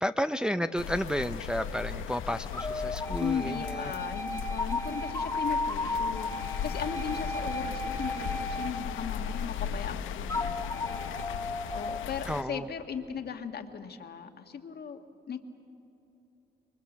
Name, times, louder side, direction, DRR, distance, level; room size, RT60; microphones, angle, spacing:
voice 1, 0.0-4.0 12.3-12.7, equal, 5° right, 9 dB, 0.5 m, -32 dB
sound 1, 0.7-12.4, left 8 dB, 80° left, 0.9 m, -37 dB
sound 2, 1.5-2.0 2.5-9.6 10.3-12.1, left 2 dB, 15° left, 1.5 m, -35 dB
voice 2, 3.2-10.9 11.5-15.4, left 6 dB, 55° left, 6 dB, 1.6 m, -37 dB
26.0 x 22.5 x 7.3 m, 2.8 s
cardioid pair, 90°, 20 cm